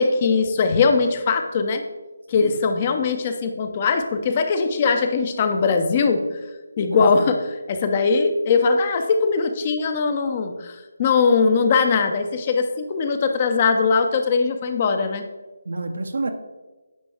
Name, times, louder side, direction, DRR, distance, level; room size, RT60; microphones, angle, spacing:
voice 1, 0.0-1.8 2.3-6.2 6.8-15.2, left 4 dB, 30° left, 7 dB, 0.6 m, -20 dB
voice 2, 6.9-7.3 15.7-16.3, right 2 dB, 60° right, 7 dB, 0.7 m, -28 dB
9.5 x 5.2 x 3.4 m, 1.2 s
figure-of-eight pair, 155°, 0 cm